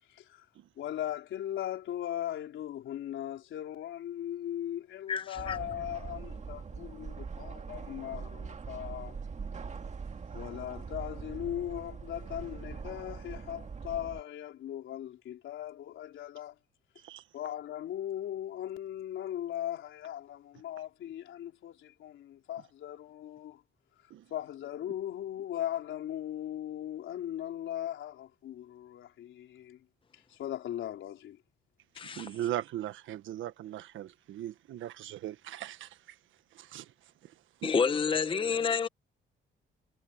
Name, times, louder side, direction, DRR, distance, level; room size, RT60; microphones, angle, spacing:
voice 1, 0.1-0.5 0.8-9.2 10.3-16.5 17.3-23.6 24.3-29.8 30.3-31.4, left 11 dB, 75° left, 4.0 m, -38 dB
voice 2, 5.1-5.6 31.9-32.4 37.6-38.9, left 5 dB, 25° left, 0.8 m, -29 dB
sound 1, 5.3-14.2, right 5 dB, 35° right, 1.9 m, -42 dB
voice 3, 32.0-36.2 36.5-36.9 37.2-37.3 37.6-37.7, right 12 dB, 80° right, 1.4 m, -39 dB
cardioid pair, 90°, 20 cm